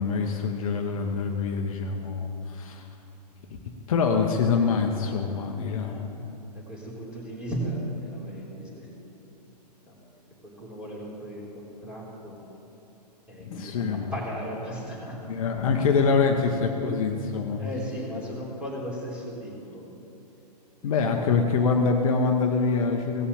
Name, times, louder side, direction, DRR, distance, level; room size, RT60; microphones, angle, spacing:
voice 1, 0.0-2.9 3.9-6.3 13.4-14.1 15.3-17.8 20.8-23.3, left 5 dB, 55° left, 3 dB, 1.1 m, -25 dB
voice 2, 6.5-9.1 9.9-10.0 10.4-12.4 13.3-15.2 17.6-19.9 20.8-21.3, right 1 dB, 5° right, -5 dB, 3.6 m, -36 dB
17.0 x 7.1 x 7.1 m, 2.8 s
figure-of-eight pair, 120°, 21 cm